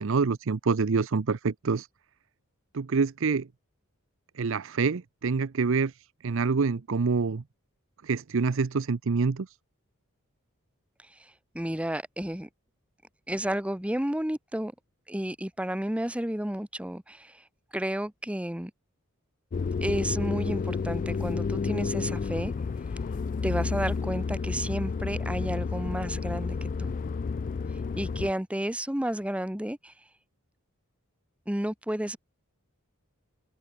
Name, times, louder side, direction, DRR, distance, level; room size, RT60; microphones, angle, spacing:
voice 1, 0.0-1.9 2.7-3.5 4.4-7.4 8.0-9.6, right 4 dB, 65° right, 0.6 m, -26 dB
voice 2, 11.0-12.5 13.3-14.7 15.1-18.7 19.8-23.0 23.4-26.9 27.7-30.1 31.5-32.2, right 1 dB, 5° right, 1.0 m, -32 dB
sound 1, 19.5-28.3, left 5 dB, 40° left, 0.3 m, -30 dB
head